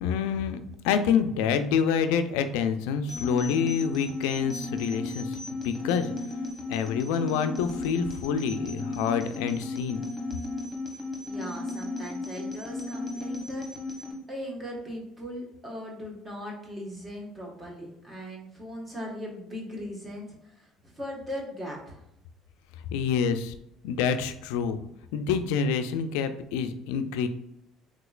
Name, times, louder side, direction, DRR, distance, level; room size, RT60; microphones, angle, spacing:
voice 1, 0.0-0.6 0.8-6.1 6.7-10.0 22.9-23.5 23.8-24.8 25.1-27.3, left 7 dB, 85° left, 10 dB, 0.3 m, -27 dB
sound 1, 3.1-14.1, left 2 dB, 30° left, 1.0 m, -35 dB
voice 2, 11.2-13.7 14.3-20.7 20.9-22.0, equal, 25° right, -2 dB, 1.3 m, -39 dB
3.7 x 2.9 x 2.4 m, 0.80 s
supercardioid pair, 85°, 0 cm